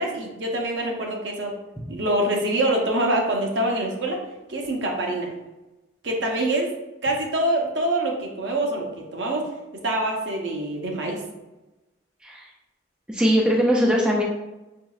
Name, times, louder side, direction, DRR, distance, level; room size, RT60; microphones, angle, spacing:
voice 1, 0.0-1.6 1.9-4.2 4.5-5.3 6.0-6.7 7.0-11.2, right 1 dB, 65° right, 0 dB, 0.7 m, -25 dB
voice 2, 13.1-14.2, equal, 5° right, -2 dB, 0.3 m, -20 dB
4.4 x 3.0 x 2.3 m, 1.0 s
head